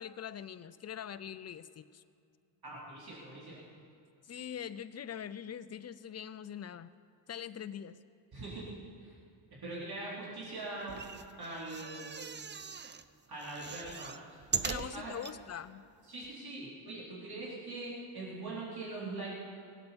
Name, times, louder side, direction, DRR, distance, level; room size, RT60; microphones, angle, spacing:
voice 1, 0.0-2.0 4.2-6.9 7.3-8.0 14.6-15.8, left 9 dB, 35° left, 13 dB, 0.6 m, -43 dB
voice 2, 2.6-3.6 8.3-8.6 9.0-9.1 9.6-11.0 11.4-12.3 13.3-15.1 16.0-19.3, right 2 dB, 50° right, -7 dB, 4.1 m, -42 dB
sound 1, 10.8-13.0 13.4-15.4 15.9-16.0 16.2-16.3, right 6 dB, 25° right, 0.5 m, -40 dB
18.5 x 8.1 x 7.1 m, 2.3 s
cardioid pair, 90°, 48 cm